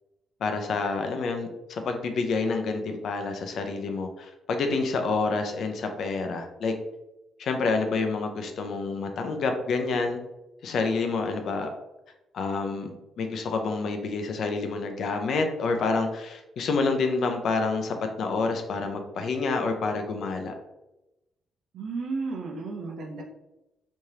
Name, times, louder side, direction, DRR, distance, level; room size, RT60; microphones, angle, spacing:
voice 1, 0.4-6.7 7.4-10.2 10.6-11.7 12.3-20.6, left 4 dB, 65° left, 5 dB, 0.6 m, -28 dB
voice 2, 21.7-23.2, right 4 dB, 70° right, 0 dB, 0.8 m, -33 dB
3.5 x 3.2 x 2.8 m, 0.94 s
cardioid pair, 90°, 0 cm